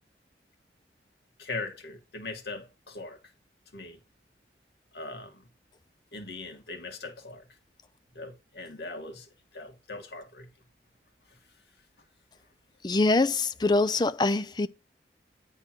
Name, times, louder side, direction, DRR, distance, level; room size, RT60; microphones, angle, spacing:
voice 1, 1.4-3.2 3.7-4.0 4.9-5.4 6.1-7.4 8.1-9.3 9.5-10.5, left 3 dB, 70° left, 1.9 m, -40 dB
voice 2, 12.8-14.7, left 2 dB, 25° left, 0.4 m, -24 dB
9.1 x 3.7 x 6.0 m
head